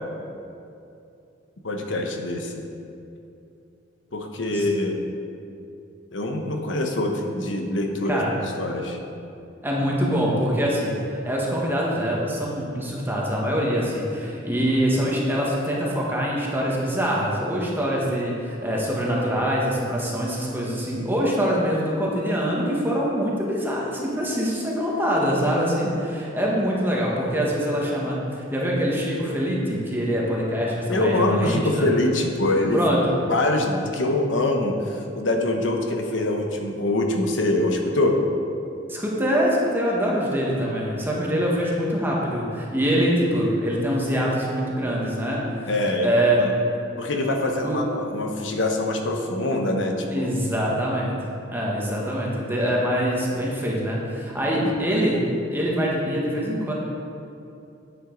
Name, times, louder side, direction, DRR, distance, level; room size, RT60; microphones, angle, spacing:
voice 1, 1.6-2.6 4.1-5.0 6.1-9.0 30.9-32.8 33.3-38.2 45.7-46.1 46.4-46.5 47.0-50.3 54.6-54.8, left 1 dB, 75° left, 3 dB, 1.1 m, -24 dB
voice 2, 9.6-10.9 11.2-31.9 32.7-33.0 38.9-45.7 46.0-46.4 47.6-47.8 50.1-51.2 51.5-55.2 55.5-56.7, equal, 10° right, -4 dB, 1.4 m, -24 dB
10.0 x 7.9 x 4.0 m, 2.7 s
head